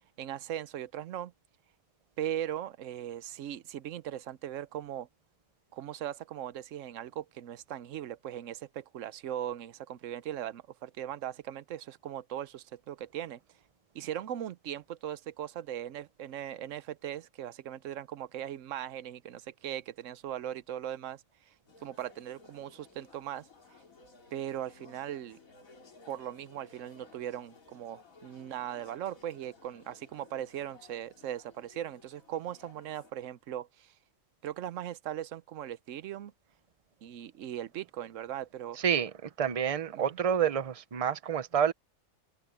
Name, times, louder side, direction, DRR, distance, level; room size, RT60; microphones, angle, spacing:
voice 1, 0.2-1.3 2.2-5.1 5.7-13.4 13.9-21.5 21.8-23.5 24.3-25.4 26.1-33.9 34.4-36.3 37.0-38.8 39.9-40.2, right 11 dB, 70° right, 1.0 m, -39 dB
sound 1, 21.7-33.1, left 4 dB, 75° left, 3.3 m, -58 dB
voice 2, 38.8-41.7, right 8 dB, 30° right, 0.7 m, -28 dB
omnidirectional pair, 1.4 m